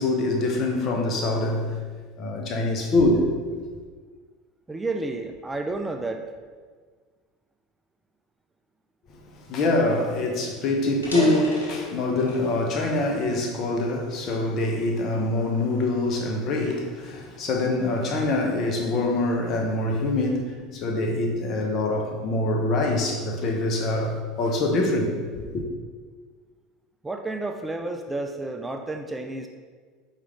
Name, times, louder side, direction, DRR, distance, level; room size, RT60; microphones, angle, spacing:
voice 1, 0.0-1.8 2.2-3.7 9.4-25.6, left 2 dB, 45° left, 0.7 m, -25 dB
voice 2, 4.7-6.3 27.0-29.5, right 2 dB, 15° right, 0.3 m, -31 dB
sound 1, 10.3-10.4 10.9-12.5 13.0-14.3 14.9-15.2 15.8-17.8, left 1 dB, 90° left, 0.9 m, -33 dB
4.6 x 2.4 x 3.3 m
hypercardioid pair, 75°, 0 cm